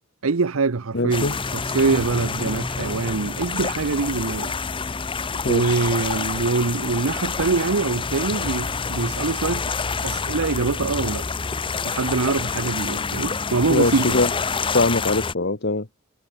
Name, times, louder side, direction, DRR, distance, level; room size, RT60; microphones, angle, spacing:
voice 1, 0.2-4.5 5.5-9.7 10.0-11.3 11.8-14.2, right 4 dB, 75° right, 0.8 m, -24 dB
voice 2, 0.9-1.3 5.4-5.8 13.7-14.3 14.7-15.9, left 2 dB, 55° left, 1.8 m, -22 dB
sound 1, 1.1-15.3, left 5 dB, 25° left, 0.7 m, -27 dB
head